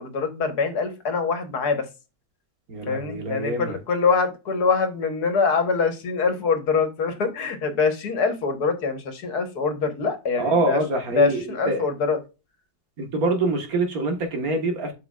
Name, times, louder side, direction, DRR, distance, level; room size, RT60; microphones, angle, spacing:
voice 1, 0.0-1.9 2.9-10.8 11.1-12.2, left 5 dB, 75° left, 1.9 m, -24 dB
voice 2, 2.7-3.8 10.4-11.9 13.0-14.9, right 2 dB, 65° right, 1.9 m, -25 dB
7.9 x 5.9 x 2.4 m
omnidirectional pair, 1.7 m